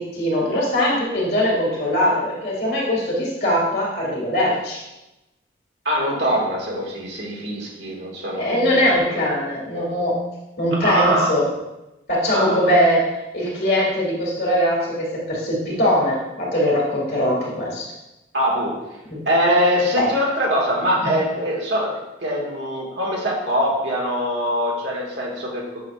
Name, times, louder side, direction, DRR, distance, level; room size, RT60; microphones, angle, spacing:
voice 1, 0.0-4.8 8.4-10.2 10.6-11.4 12.1-17.9 19.1-19.2 20.0-20.1 21.0-21.1, equal, 55° left, -3 dB, 2.2 m, -21 dB
voice 2, 5.8-9.3 10.8-11.3 12.3-12.7 18.3-18.7 19.2-21.9 22.2-25.8, equal, 70° right, -3 dB, 1.7 m, -23 dB
7.5 x 6.0 x 2.4 m, 0.96 s
head